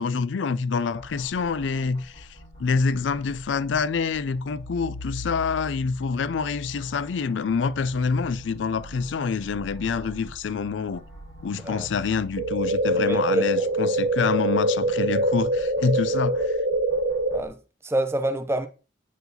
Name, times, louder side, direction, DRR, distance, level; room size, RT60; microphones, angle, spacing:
voice 1, 0.0-11.0 11.4-16.6, left 5 dB, 80° left, 0.4 m, -26 dB
sound 1, 0.9-17.5, left 1 dB, 65° left, 3.0 m, -44 dB
voice 2, 11.5-11.9 13.0-13.5 17.3-18.7, right 1 dB, 15° right, 0.6 m, -27 dB
sound 2, 12.4-17.4, right 1 dB, 70° right, 1.2 m, -24 dB
8.2 x 4.6 x 4.0 m
head